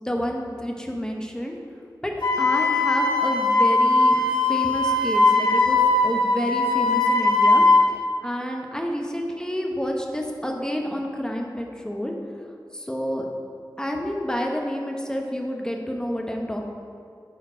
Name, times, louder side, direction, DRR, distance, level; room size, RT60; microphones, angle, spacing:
voice 1, 0.0-1.6 2.0-2.1 2.4-7.6 8.2-12.1 12.7-13.3 13.8-16.6, equal, 10° left, 1 dB, 1.0 m, -29 dB
Wind instrument woodwind instrument, 2.2-7.9, left 2 dB, 80° left, 1.5 m, -19 dB
9.2 x 4.5 x 5.0 m, 2.4 s
wide cardioid pair, 60°, 8 cm